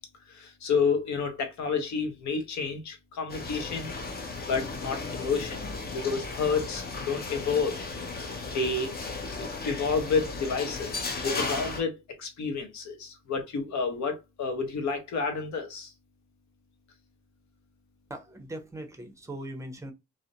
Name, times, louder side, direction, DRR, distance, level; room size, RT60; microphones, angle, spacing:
voice 1, 0.3-3.9 4.4-5.6 5.9-7.8 8.5-8.9 9.4-15.9, left 5 dB, 65° left, 0.8 m, -30 dB
sound 1, 3.3-11.8, left 3 dB, 30° left, 0.6 m, -35 dB
voice 2, 18.1-19.9, right 1 dB, 10° right, 0.6 m, -40 dB
2.5 x 2.0 x 2.6 m
cardioid pair, 90°, 30 cm